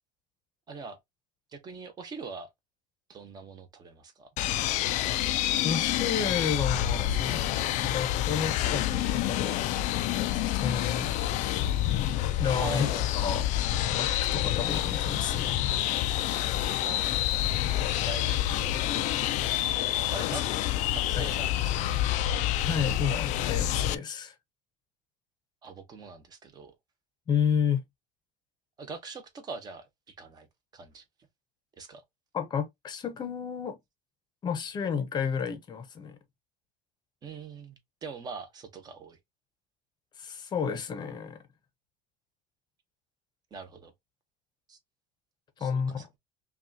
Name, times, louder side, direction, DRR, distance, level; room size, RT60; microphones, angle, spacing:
voice 1, 0.7-1.0 1.5-2.5 3.1-4.3 12.6-13.1 14.4-15.6 16.8-17.1 17.9-18.8 20.1-20.5 20.9-21.8 25.6-26.7 28.8-30.5 30.7-31.0 31.8-32.0 37.2-39.2 43.5-43.9 44.7-44.8 45.6-46.1, right 4 dB, 25° right, 0.9 m, -42 dB
sound 1, 4.4-24.0, left 13 dB, 45° left, 0.4 m, -28 dB
voice 2, 5.6-7.4 7.8-9.6 10.4-11.1 12.4-13.4 13.9-15.7 20.3-20.4 21.1-21.2 22.6-24.3 27.3-27.8 32.3-33.8 34.4-36.2 40.2-41.4 45.6-46.1, left 7 dB, 25° left, 0.8 m, -31 dB
5.4 x 2.4 x 2.7 m
cardioid pair, 160°, 17 cm